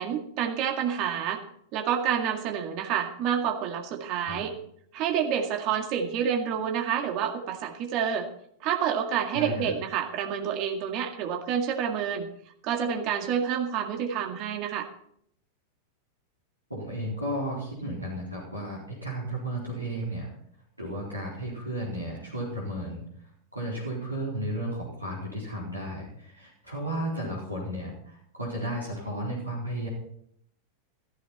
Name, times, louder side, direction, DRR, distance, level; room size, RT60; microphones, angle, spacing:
voice 1, 0.0-1.4 1.7-4.5 4.9-8.3 8.6-12.3 12.6-14.9, right 8 dB, 40° right, 4 dB, 2.0 m, -28 dB
voice 2, 9.3-9.7 16.7-20.3 20.8-23.0 23.5-29.9, right 1 dB, 85° right, -5 dB, 4.2 m, -33 dB
14.5 x 14.5 x 4.3 m, 0.67 s
figure-of-eight pair, 90°, 0 cm